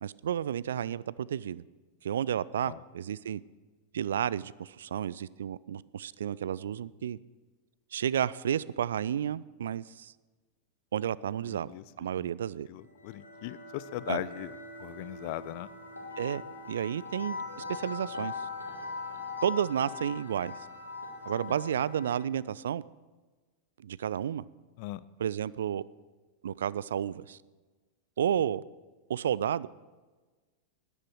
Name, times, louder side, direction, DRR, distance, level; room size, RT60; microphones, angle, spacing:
voice 1, 0.0-1.6 2.0-3.4 3.9-7.2 7.9-10.1 10.9-11.7 12.0-12.7 14.1-14.2 16.2-17.4 17.7-18.5 19.4-20.5 21.3-22.8 23.8-24.4 25.2-25.8 26.4-27.4 28.2-28.6 29.1-29.7, right 9 dB, 65° right, 21 dB, 0.3 m, -31 dB
voice 2, 11.4-11.8 12.2-12.3 12.7-15.7 21.5-21.6 24.8-25.0, left 16 dB, 45° left, 19 dB, 0.5 m, -39 dB
sound 1, 12.9-22.4, left 4 dB, 85° left, 1.8 m, -41 dB
13.0 x 10.5 x 6.4 m, 1.3 s
figure-of-eight pair, 90°, 0 cm